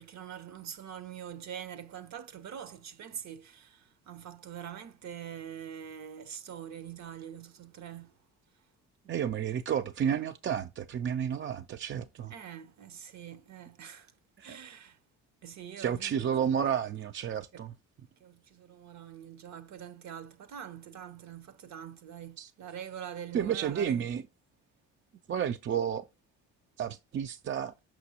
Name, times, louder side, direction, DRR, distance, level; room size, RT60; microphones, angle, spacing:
voice 1, 0.0-8.2 12.3-14.1 14.4-15.0 15.4-16.4 17.5-17.6 18.2-24.1, right 9 dB, 55° right, 0.8 m, -44 dB
voice 2, 9.1-12.3 14.5-14.6 15.8-17.7 22.4-22.5 23.3-24.2 25.3-26.1 26.8-27.7, right 8 dB, 35° right, 0.4 m, -31 dB
6.0 x 5.8 x 2.8 m
supercardioid pair, 70°, 33 cm